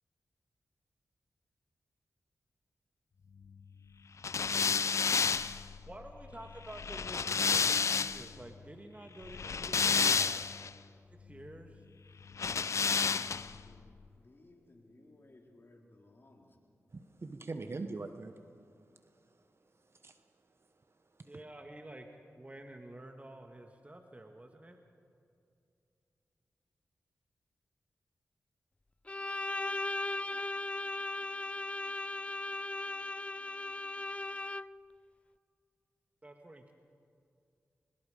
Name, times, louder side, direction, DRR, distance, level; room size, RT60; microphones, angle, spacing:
sound 1, 4.2-8.3 9.3-10.7 12.3-13.6, left 5 dB, 65° left, 0.6 m, -30 dB
voice 1, 5.9-10.5 11.2-11.8 21.2-22.1 22.4-24.8 36.2-36.7, right 1 dB, 25° right, 4 dB, 1.8 m, -49 dB
voice 2, 12.8-13.8 14.2-16.6, left 2 dB, 45° left, 0 dB, 4.4 m, -60 dB
voice 3, 16.9-18.3 19.8-20.2 21.1-21.3, right 3 dB, 50° right, 8 dB, 1.1 m, -42 dB
Bowed string instrument, 29.1-34.9, left 2 dB, 25° left, 0.4 m, -37 dB
23.0 x 22.0 x 5.1 m, 2.5 s
cardioid pair, 45°, 5 cm